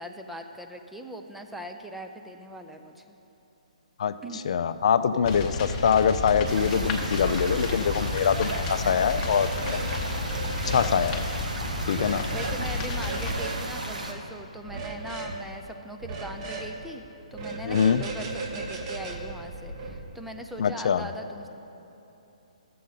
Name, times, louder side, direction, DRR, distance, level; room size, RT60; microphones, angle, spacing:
voice 1, 0.0-3.2 4.2-4.4 12.3-21.5, right 1 dB, 5° right, 4 dB, 0.4 m, -40 dB
voice 2, 4.4-9.8 10.7-11.3 11.9-12.3 17.6-18.0 20.6-21.1, left 7 dB, 60° left, 11 dB, 0.4 m, -24 dB
sound 1, 5.2-13.3, left 3 dB, 25° left, 0.8 m, -32 dB
sound 2, 6.4-14.1, right 2 dB, 85° right, 1.1 m, -35 dB
sound 3, 9.2-9.9 10.2-10.9 11.9-12.6 12.9-13.6 14.6-15.4 16.0-16.7 17.3-20.0, right 3 dB, 40° right, 1.0 m, -36 dB
12.5 x 7.5 x 4.0 m, 3.0 s
hypercardioid pair, 140°, 4 cm